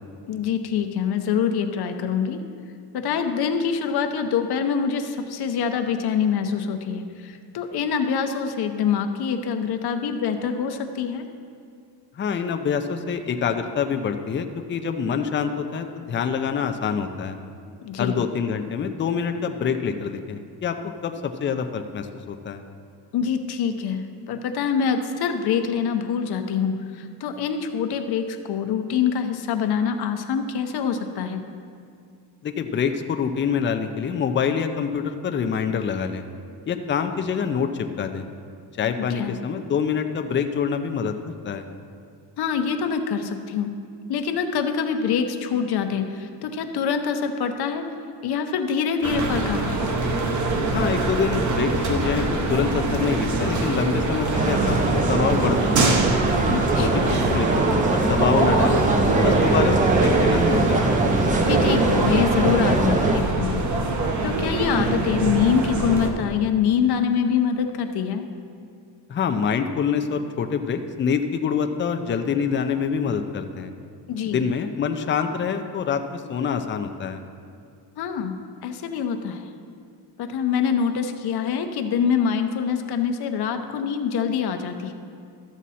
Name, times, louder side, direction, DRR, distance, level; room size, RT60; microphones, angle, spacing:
voice 1, 0.3-2.4 2.9-11.3 17.8-18.2 23.1-31.4 39.1-39.3 42.4-43.7 44.1-47.9 48.2-49.9 56.5-57.1 61.4-63.7 64.2-68.3 74.1-74.5 78.0-79.4 80.2-84.9, left 7 dB, 65° left, 7 dB, 0.8 m, -25 dB
voice 2, 12.2-17.4 18.0-20.7 21.0-22.6 32.4-36.2 36.7-38.3 38.8-41.6 50.7-55.6 55.8-56.0 56.8-57.6 57.9-58.9 59.2-60.8 69.1-73.7 74.3-77.2, left 6 dB, 30° left, 7 dB, 0.5 m, -26 dB
sound 1, 49.0-66.1, right 2 dB, 45° right, 1.0 m, -24 dB
sound 2, 54.3-63.2, right 2 dB, 20° right, 0.5 m, -22 dB
12.5 x 7.3 x 4.2 m, 2.3 s
cardioid pair, 145°, 42 cm